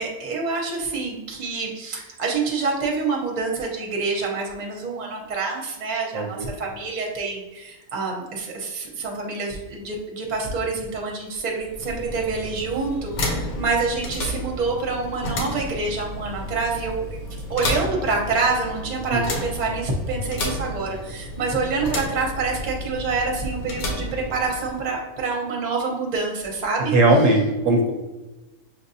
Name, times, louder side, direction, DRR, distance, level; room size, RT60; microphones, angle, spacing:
voice 1, 0.0-27.0, right 4 dB, 35° right, -1 dB, 0.7 m, -27 dB
voice 2, 6.1-6.5 19.1-19.2 26.9-27.9, right 2 dB, 70° right, 1 dB, 0.9 m, -18 dB
sound 1, 11.6-24.9, left 1 dB, 75° left, 1.2 m, -31 dB
6.1 x 2.6 x 2.6 m, 1.1 s
omnidirectional pair, 1.6 m